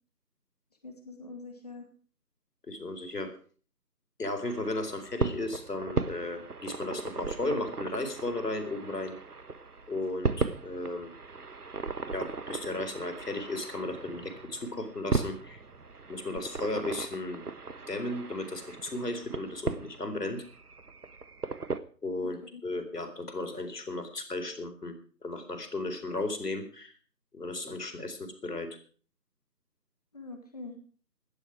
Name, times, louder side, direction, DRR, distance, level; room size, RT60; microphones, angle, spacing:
voice 1, 0.8-1.9 22.2-22.6 30.1-30.8, left 3 dB, 25° left, 4 dB, 2.2 m, -44 dB
voice 2, 2.7-3.3 4.2-9.1 9.9-11.1 12.1-15.6 16.1-17.4 17.9-20.4 22.0-24.9 25.2-26.9 27.3-28.8, left 2 dB, 70° left, 6 dB, 4.4 m, -35 dB
sound 1, 4.4-21.8, right 4 dB, 65° right, 1.4 m, -37 dB
17.0 x 12.0 x 4.9 m, 0.43 s
figure-of-eight pair, 165°, 49 cm